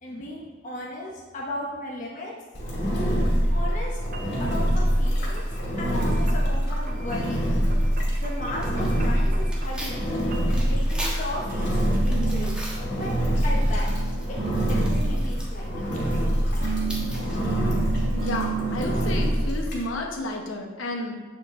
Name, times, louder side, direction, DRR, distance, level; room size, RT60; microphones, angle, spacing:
voice 1, 0.0-2.3 3.5-4.0 4.4-5.4 5.8-7.5 8.2-10.0 10.5-11.7 12.0-12.6 12.9-13.1 13.4-15.9, left 1 dB, 40° left, -3 dB, 0.9 m, -35 dB
Engine, 2.5-19.8, equal, 60° left, 2.5 m, -25 dB
sound 1, 3.6-3.7 4.1-4.6 5.0-5.5 6.0-6.5 6.9-7.4 7.7-10.0 10.3-10.7 11.5-13.6 13.9-16.0 16.6-18.8, right 6 dB, 45° right, 0.6 m, -35 dB
Tearing, 7.6-18.4, right 1 dB, 5° right, 1.4 m, -42 dB
voice 2, 18.1-21.1, left 1 dB, 80° left, 1 dB, 1.1 m, -31 dB
8.6 x 5.2 x 3.7 m, 1.3 s
head